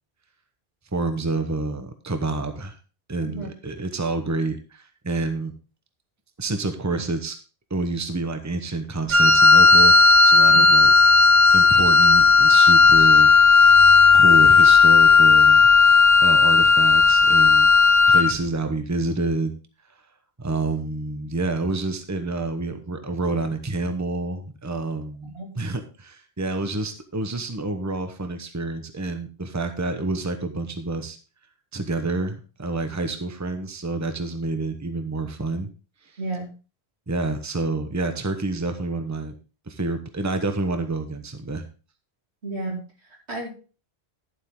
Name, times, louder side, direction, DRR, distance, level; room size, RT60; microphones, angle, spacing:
voice 1, 0.9-2.7 3.1-5.5 6.4-7.4 7.7-10.9 11.5-13.3 14.1-15.6 16.1-19.5 20.4-31.2 31.7-35.7 37.1-39.3 39.7-41.6, right 3 dB, 15° right, 7 dB, 1.0 m, -28 dB
Wind instrument woodwind instrument, 9.1-18.4, left 4 dB, 65° right, 1.4 m, -14 dB
voice 2, 25.2-25.5 36.2-36.5 42.4-42.8 43.3-43.5, right 2 dB, 90° right, 0 dB, 3.1 m, -32 dB
12.0 x 7.5 x 3.7 m, 0.33 s
omnidirectional pair, 1.1 m